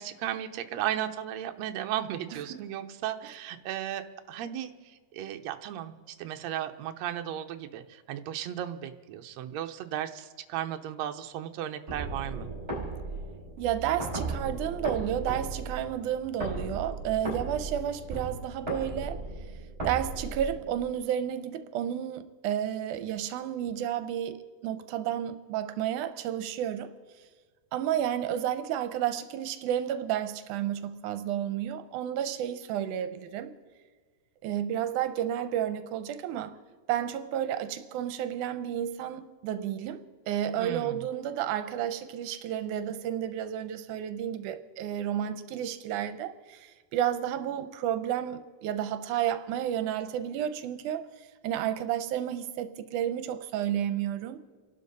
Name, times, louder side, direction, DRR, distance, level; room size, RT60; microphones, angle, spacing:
voice 1, 0.0-12.5 40.6-41.0, right 11 dB, 70° right, 1.9 m, -35 dB
sound 1, 11.9-20.9, right 2 dB, 15° right, 5.5 m, -36 dB
voice 2, 13.6-19.3 19.8-26.9 27.7-33.5 34.4-36.6 36.9-54.4, right 10 dB, 90° right, 2.2 m, -31 dB
29.0 x 12.0 x 4.1 m
omnidirectional pair, 3.6 m